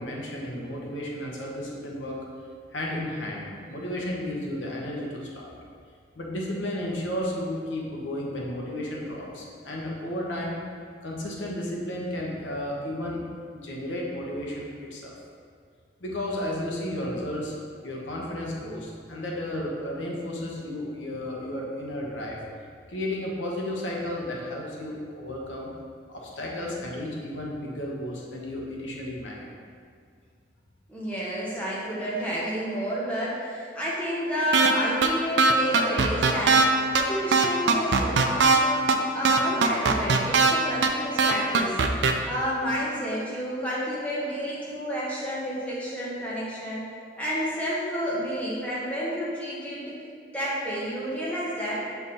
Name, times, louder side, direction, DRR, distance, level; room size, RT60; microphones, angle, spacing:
voice 1, 0.0-2.2 2.7-5.5 6.2-10.6 11.0-13.2 13.5-15.1 16.0-17.5 17.8-22.4 22.9-25.7 26.1-29.5, left 1 dB, 90° left, -2 dB, 1.0 m, -33 dB
voice 2, 30.9-41.8 42.2-46.8 47.2-49.9 50.3-51.8, equal, 5° left, -7 dB, 1.1 m, -30 dB
sound 1, 34.5-34.7 35.0-35.1 35.4-36.6 36.9-37.0 37.3-38.6 38.9-39.0 39.2-40.5 40.8-40.9 41.2-42.1, right 4 dB, 70° right, 0.4 m, -19 dB
7.1 x 3.5 x 4.2 m, 2.1 s
head